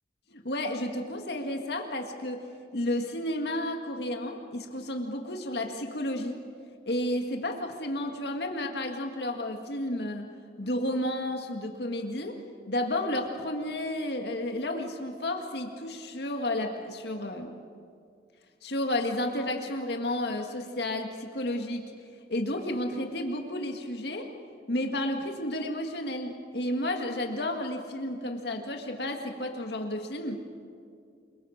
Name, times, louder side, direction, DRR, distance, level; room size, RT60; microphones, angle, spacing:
voice 1, 0.3-2.5 2.7-6.4 6.9-10.3 10.6-12.4 12.7-17.5 18.6-21.9 22.3-24.3 24.7-30.7, left 1 dB, 65° left, 3 dB, 2.0 m, -32 dB
29.0 x 23.0 x 6.6 m, 2.3 s
head